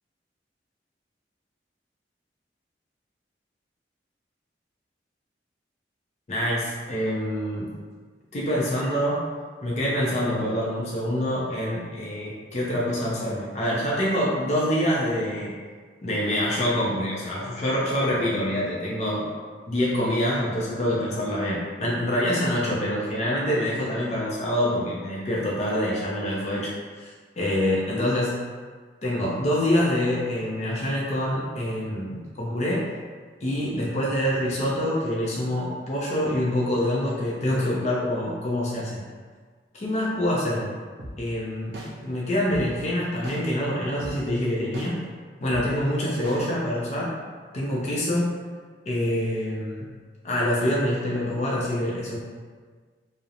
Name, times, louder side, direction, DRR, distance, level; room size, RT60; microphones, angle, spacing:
voice 1, 6.3-7.7 8.3-9.3 9.6-15.5 16.0-19.3 19.7-28.4 29.0-32.9 33.4-39.0 39.7-40.8 41.2-45.0 45.4-47.1 47.5-48.4 48.9-49.9 50.2-52.2, equal, 40° left, -5 dB, 0.4 m, -26 dB
sound 1, 41.0-41.1 41.7-41.9 42.5-42.6 43.2-43.4 44.0-44.1 44.7-44.9 45.5-45.6 46.2-46.4, right 1 dB, 65° right, 0.5 m, -37 dB
2.4 x 2.0 x 2.8 m, 1.5 s
head